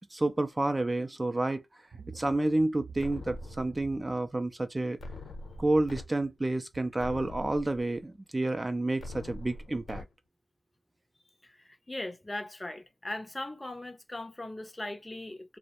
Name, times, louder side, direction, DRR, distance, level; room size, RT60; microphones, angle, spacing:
voice 1, 0.1-1.6 2.1-5.0 5.6-10.0, right 2 dB, 30° right, 0.4 m, -29 dB
sound 1, 1.9-4.9 5.4-7.1 7.6-7.7, right 5 dB, 65° right, 0.7 m, -50 dB
sound 2, 3.0-4.0 5.0-6.0 6.5-6.6 7.0-8.0 9.0-10.0, left 2 dB, 65° left, 0.7 m, -43 dB
voice 2, 11.4-15.6, left 1 dB, 25° left, 0.5 m, -39 dB
2.3 x 2.0 x 2.8 m
supercardioid pair, 40°, 0 cm